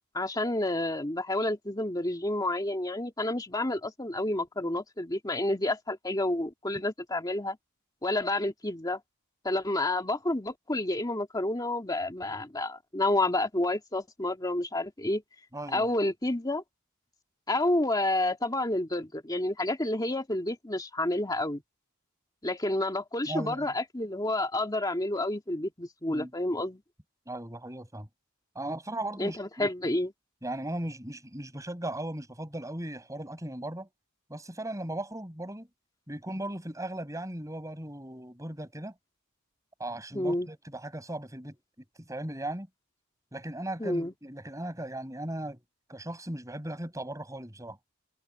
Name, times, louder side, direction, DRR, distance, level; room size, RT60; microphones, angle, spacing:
voice 1, 0.1-7.6 8.0-9.0 9.4-15.2 15.7-16.6 17.5-21.6 22.4-26.8 29.2-30.1 40.1-40.5 43.8-44.1, left 1 dB, 15° left, 2.2 m, -29 dB
voice 2, 15.5-15.9 23.2-23.7 26.1-26.3 27.3-28.1 28.5-29.7 30.4-33.9 34.3-35.7 36.1-38.9 39.8-41.6 42.1-42.7 43.3-45.6 45.9-47.8, right 1 dB, 15° right, 6.6 m, -37 dB
head